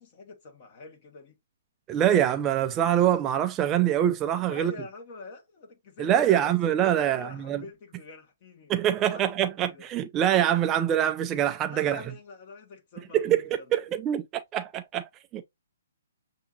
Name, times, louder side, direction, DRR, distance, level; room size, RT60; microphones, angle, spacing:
voice 1, 0.0-1.4 4.5-9.9 11.7-13.9, left 3 dB, 40° left, 1.8 m, -46 dB
voice 2, 1.9-4.7 6.0-7.6 8.7-12.0 13.1-13.4 13.7-15.4, right 11 dB, 20° right, 0.4 m, -24 dB
6.9 x 2.8 x 2.7 m
hypercardioid pair, 145°, 0 cm